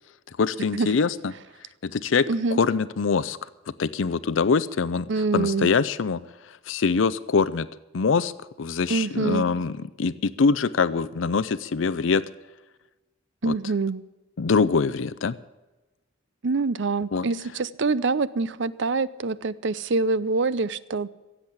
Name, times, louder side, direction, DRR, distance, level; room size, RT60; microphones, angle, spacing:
voice 1, 0.4-1.3 1.8-2.3 2.6-3.4 3.8-5.1 5.3-6.2 6.7-7.7 7.9-8.3 8.6-12.2 13.5-13.6 14.4-15.4 17.1-17.3, left 5 dB, 75° left, 16 dB, 0.5 m, -23 dB
voice 2, 2.3-2.6 5.1-5.7 8.9-9.4 13.4-14.0 16.4-21.1, right 3 dB, 65° right, 17 dB, 0.6 m, -25 dB
16.0 x 8.1 x 8.6 m, 1.1 s
head